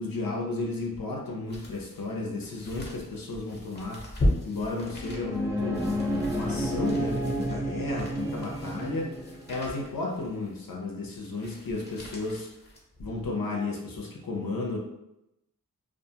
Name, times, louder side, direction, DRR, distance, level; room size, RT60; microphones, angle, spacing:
voice 1, 0.0-4.1 4.4-5.9 6.3-9.1 9.5-12.5 13.0-14.8, left 3 dB, 70° left, -1 dB, 0.6 m, -33 dB
sound 1, 0.7-13.4 13.9-14.0, left 1 dB, 25° left, 0.9 m, -37 dB
sound 2, 4.9-9.6, equal, 10° right, 0.5 m, -31 dB
2.5 x 2.3 x 2.7 m, 0.87 s
wide cardioid pair, 55°, 36 cm